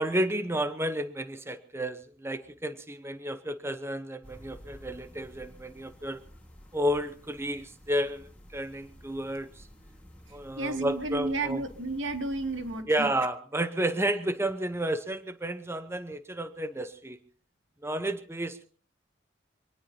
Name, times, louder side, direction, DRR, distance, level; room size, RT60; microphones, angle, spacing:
voice 1, 0.0-6.2 6.7-9.7 10.3-11.6 12.9-17.2 17.8-18.7, right 1 dB, 15° right, 10 dB, 0.9 m, -31 dB
sound 1, 4.2-12.8, equal, 5° left, 4.6 m, -52 dB
voice 2, 10.6-13.1, right 2 dB, 85° right, 5 dB, 2.5 m, -32 dB
25.5 x 18.5 x 2.8 m, 0.40 s
head